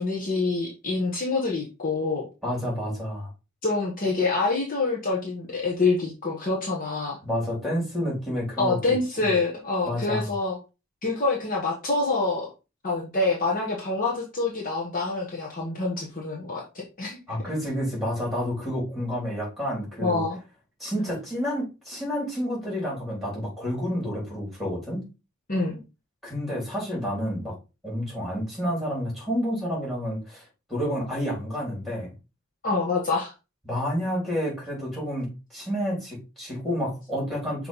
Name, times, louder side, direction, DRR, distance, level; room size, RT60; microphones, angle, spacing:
voice 1, 0.0-2.3 3.6-7.2 8.6-10.6 11.0-12.5 12.8-17.2 20.0-20.4 25.5-25.8 32.6-33.3, left 3 dB, 40° left, -2 dB, 1.3 m, -26 dB
voice 2, 2.4-3.3 7.2-8.8 9.2-9.3 9.8-10.3 17.3-20.2 20.8-25.0 26.2-27.5 27.8-30.4 30.7-32.1 33.6-37.7, equal, ahead, -4 dB, 3.8 m, -29 dB
6.1 x 3.2 x 5.5 m, 0.29 s
head